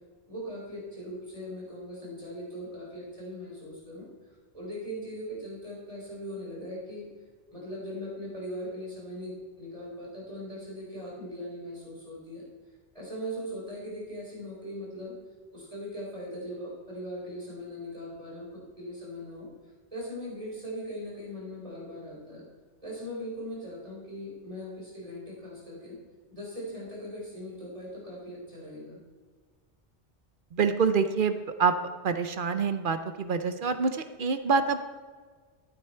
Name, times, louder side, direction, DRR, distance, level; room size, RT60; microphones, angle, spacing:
voice 1, 0.3-4.1 4.5-7.1 7.5-12.4 12.9-15.2 15.5-19.5 19.9-22.4 22.8-26.0 26.3-29.0, equal, 30° right, -5 dB, 3.9 m, -39 dB
voice 2, 30.5-31.7 32.0-34.8, right 5 dB, 50° right, 9 dB, 0.8 m, -26 dB
12.5 x 8.4 x 4.5 m, 1.5 s
omnidirectional pair, 1.2 m